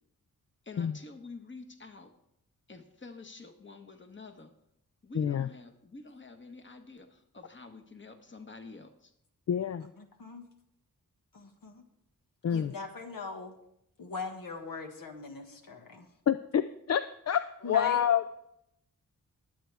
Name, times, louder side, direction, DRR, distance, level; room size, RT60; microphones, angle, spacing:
voice 1, 0.6-2.1 2.7-4.5 5.0-9.1, left 3 dB, 35° left, 6 dB, 1.5 m, -48 dB
voice 2, 5.1-5.5 9.5-9.9 12.4-12.7 16.3-18.3, left 9 dB, 50° left, 11 dB, 0.5 m, -28 dB
voice 3, 9.8-10.5 11.3-11.8 12.5-13.6 14.0-16.1 17.6-18.0, left 4 dB, 75° left, 3 dB, 1.8 m, -40 dB
20.5 x 8.1 x 3.5 m, 0.77 s
cardioid pair, 75°, 33 cm